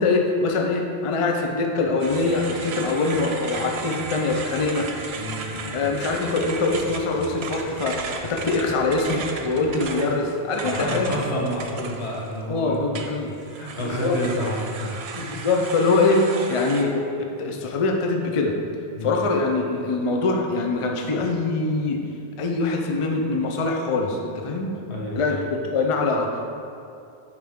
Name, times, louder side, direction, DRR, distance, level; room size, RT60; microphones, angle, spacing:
voice 1, 0.0-4.9 5.7-11.2 12.5-13.3 14.0-14.4 15.1-18.5 19.0-22.0 22.4-24.9 25.2-25.4 25.7-26.5, left 3 dB, 40° left, 1 dB, 0.5 m, -23 dB
sound 1, 2.0-12.5 12.9-16.8, right 4 dB, 75° right, 0.9 m, -35 dB
sound 2, 2.1-10.1, left 2 dB, 65° left, 0.8 m, -42 dB
voice 2, 5.2-5.9 10.8-13.0 13.6-15.0 19.0-19.2 24.9-25.4, equal, 80° left, -3 dB, 1.4 m, -29 dB
7.6 x 5.1 x 3.6 m, 2.6 s
omnidirectional pair, 1.1 m